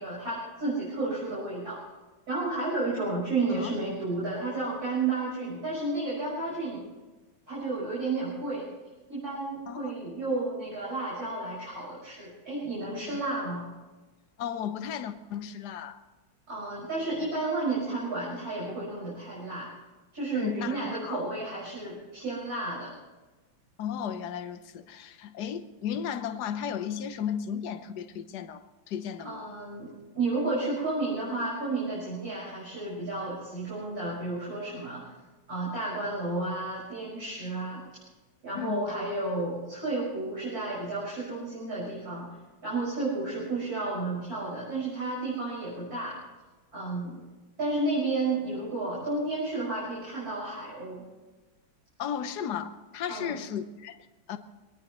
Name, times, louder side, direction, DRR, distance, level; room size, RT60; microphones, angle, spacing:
voice 1, 0.0-1.8 2.3-6.8 7.5-8.7 9.1-13.6 16.5-19.7 20.1-22.9 29.2-35.0 35.5-37.8 38.4-42.3 42.6-46.2 46.7-47.2 47.6-51.0 53.1-53.4, right 2 dB, 45° right, 6.4 m, -32 dB
voice 2, 14.4-16.0 20.3-21.3 23.8-29.5 38.5-38.9 52.0-54.4, left 8 dB, 60° left, 1.4 m, -35 dB
23.5 x 19.0 x 3.1 m
omnidirectional pair, 2.3 m